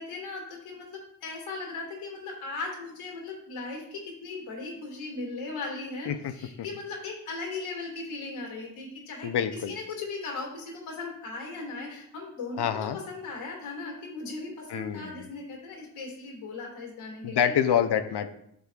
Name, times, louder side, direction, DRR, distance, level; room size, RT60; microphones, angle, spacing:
voice 1, 0.0-9.3 9.7-12.6 13.1-17.5, left 3 dB, 85° left, 0 dB, 2.1 m, -38 dB
voice 2, 9.2-9.7 12.6-13.0 14.7-15.3 17.2-18.3, left 8 dB, 55° left, 9 dB, 0.7 m, -27 dB
8.4 x 6.4 x 2.4 m, 0.74 s
supercardioid pair, 55°, 49 cm